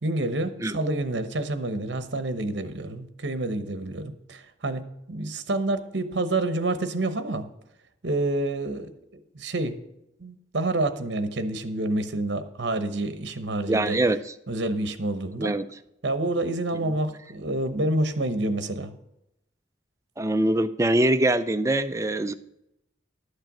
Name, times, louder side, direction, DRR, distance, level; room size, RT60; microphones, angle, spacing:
voice 1, 0.0-7.4 8.0-9.7 10.2-14.0 14.5-15.5 16.0-18.9, right 2 dB, 65° right, 10 dB, 1.0 m, -28 dB
voice 2, 13.7-14.2 15.4-15.6 20.2-22.3, right 1 dB, 15° right, 10 dB, 0.4 m, -23 dB
11.5 x 6.6 x 6.0 m, 0.84 s
head